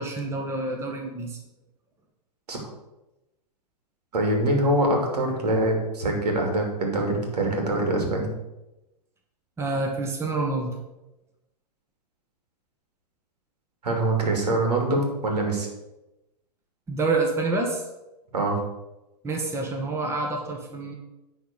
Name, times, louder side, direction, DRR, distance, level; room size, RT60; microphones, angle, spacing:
voice 1, 0.0-1.4 9.6-10.8 16.9-17.8 19.2-20.9, right 3 dB, 10° right, 1 dB, 1.3 m, -27 dB
voice 2, 4.1-8.3 13.8-15.7 18.3-18.6, right 1 dB, 70° right, 2 dB, 2.8 m, -24 dB
9.7 x 4.1 x 6.6 m, 0.98 s
figure-of-eight pair, 110°, 21 cm